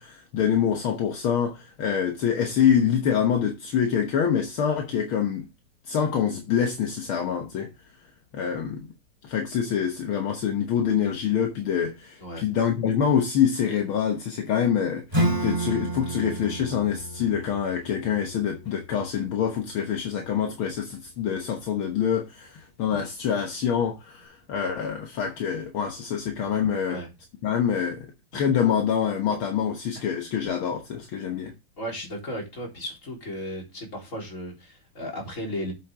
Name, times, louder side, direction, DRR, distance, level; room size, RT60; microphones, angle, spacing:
voice 1, 0.0-5.5 5.9-7.7 8.3-8.9 9.2-15.0 15.4-27.0 27.4-28.1 28.3-31.5, left 8 dB, 70° left, 2.0 m, -25 dB
Acoustic guitar / Strum, 15.1-20.3, right 1 dB, 10° right, 4.2 m, -31 dB
voice 2, 31.8-35.7, equal, 35° left, 4.1 m, -35 dB
8.2 x 7.7 x 3.7 m
omnidirectional pair, 2.4 m